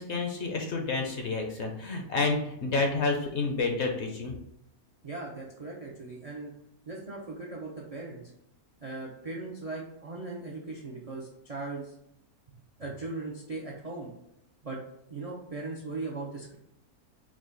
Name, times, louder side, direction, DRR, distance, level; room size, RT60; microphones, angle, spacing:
voice 1, 0.0-4.3, left 3 dB, 60° left, 2 dB, 0.8 m, -29 dB
voice 2, 5.0-6.5 6.9-8.2 8.8-11.9 12.8-14.1 14.6-14.8 15.1-16.6, right 3 dB, 60° right, -2 dB, 0.3 m, -38 dB
4.8 x 2.2 x 3.8 m, 0.80 s
omnidirectional pair, 1.6 m